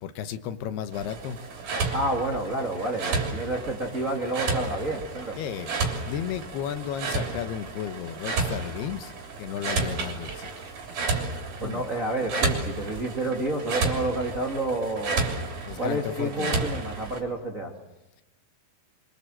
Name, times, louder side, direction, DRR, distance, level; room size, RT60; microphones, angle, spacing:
voice 1, 0.0-1.4 5.4-9.1 9.4-10.5 11.6-11.8 15.6-16.7, left 9 dB, 75° left, 3.0 m, -34 dB
sound 1, 0.9-17.2, right 3 dB, 50° right, 4.6 m, -32 dB
voice 2, 1.9-5.4 11.6-15.2 15.8-17.7, right 1 dB, 30° right, 1.7 m, -29 dB
25.5 x 24.5 x 7.7 m
omnidirectional pair, 4.8 m